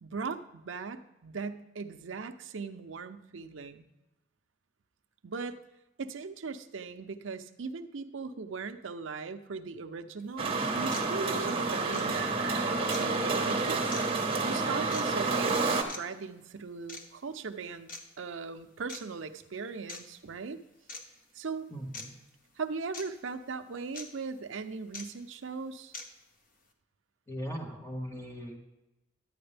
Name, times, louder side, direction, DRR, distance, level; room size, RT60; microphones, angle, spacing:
voice 1, 0.0-3.9 5.2-5.6 6.0-12.4 12.9-14.0 14.4-17.9 18.2-20.6 21.3-21.7 22.6-25.9, right 4 dB, 80° right, 8 dB, 0.6 m, -39 dB
sound 1, 10.2-10.3 10.9-11.1 11.9-12.1 12.9-13.1 13.9-14.0 14.9-15.1 15.9-16.0 16.9-17.1 17.9-18.0 18.9-19.0 19.9-20.0 20.9-21.0 21.9-22.1 22.9-23.0 23.9-24.1 24.9-25.0 25.9-26.1, left 3 dB, 45° left, 1.0 m, -41 dB
sound 2, 10.4-15.8, right 3 dB, 30° right, 1.1 m, -29 dB
voice 2, 21.7-22.1 27.3-28.6, equal, 15° left, -1 dB, 1.6 m, -39 dB
11.0 x 8.7 x 3.4 m, 0.97 s
head